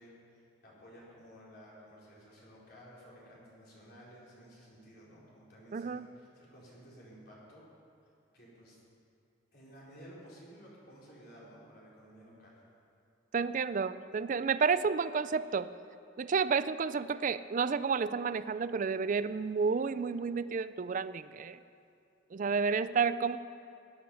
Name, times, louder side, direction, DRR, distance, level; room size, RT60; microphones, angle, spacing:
voice 1, 0.0-7.7 8.3-8.8 9.5-12.6, equal, 50° left, -6 dB, 4.3 m, -54 dB
voice 2, 5.7-6.1 13.3-15.7 16.2-21.6 22.3-23.4, right 5 dB, 40° right, 15 dB, 0.4 m, -31 dB
17.0 x 11.5 x 5.6 m, 2.5 s
head